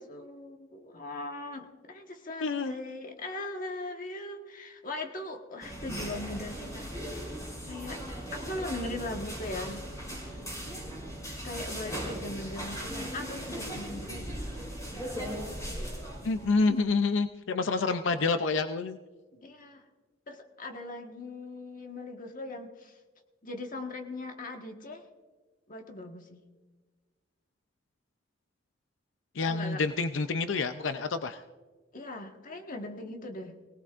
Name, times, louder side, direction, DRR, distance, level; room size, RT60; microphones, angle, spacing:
voice 1, 0.0-6.9 7.6-8.0 8.3-10.3 11.4-14.3 19.4-19.8 20.3-23.0 23.4-25.0 25.7-26.4 29.4-29.8 31.9-33.6, left 2 dB, 45° left, 4 dB, 1.4 m, -40 dB
voice 2, 2.4-2.8 16.2-19.0 29.4-31.4, left 4 dB, 85° left, 9 dB, 0.5 m, -28 dB
sound 1, 5.6-16.7, equal, 15° left, 5.4 m, -38 dB
23.0 x 18.0 x 2.5 m, 1.3 s
head